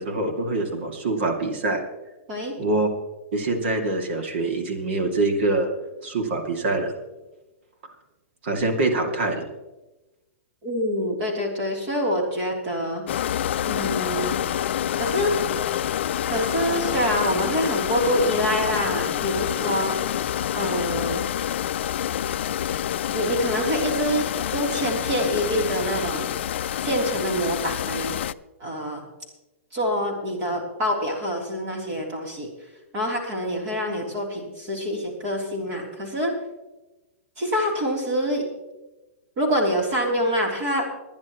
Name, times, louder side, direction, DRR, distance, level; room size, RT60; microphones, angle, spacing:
voice 1, 0.0-1.8 2.6-2.9 3.3-5.7 6.0-6.9 8.4-9.5, right 2 dB, 55° right, 4 dB, 2.5 m, -24 dB
voice 2, 10.6-13.0 13.6-14.4 15.0-15.3 16.3-19.9 20.5-21.2 23.1-24.3 24.5-26.3 26.8-28.2 28.6-29.0 29.7-32.5 32.9-36.3 37.4-38.5 39.4-40.9, equal, 30° right, -1 dB, 3.4 m, -26 dB
sound 1, 13.1-28.3, left 11 dB, 60° left, 0.4 m, -27 dB
22.0 x 10.5 x 3.1 m, 1.0 s
hypercardioid pair, 170°, 7 cm